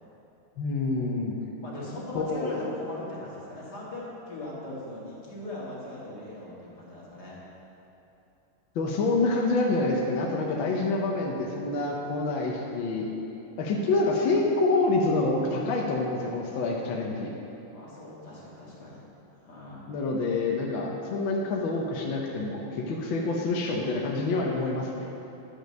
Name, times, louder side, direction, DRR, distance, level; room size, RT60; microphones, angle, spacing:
voice 1, 0.6-1.4 2.1-2.6 8.7-13.1 13.6-17.3 19.9-25.1, left 3 dB, 70° left, -2 dB, 1.6 m, -27 dB
voice 2, 1.6-7.4 12.0-12.3 17.7-19.1 19.3-19.9, left 1 dB, 50° left, -6 dB, 2.5 m, -40 dB
11.0 x 5.2 x 6.4 m, 3.0 s
omnidirectional pair, 2.3 m